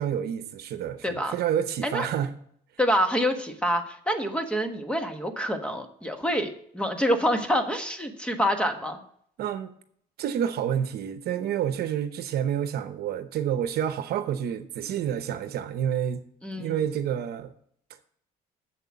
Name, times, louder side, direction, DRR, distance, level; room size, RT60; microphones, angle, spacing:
voice 1, 0.0-2.3 9.4-9.7 10.2-16.2 16.6-17.5, right 9 dB, 70° right, 0.9 m, -29 dB
voice 2, 1.0-1.3 1.8-2.1 2.8-9.0 16.4-16.8, equal, 5° left, 1.3 m, -27 dB
7.5 x 6.7 x 7.4 m
cardioid pair, 110°, 17 cm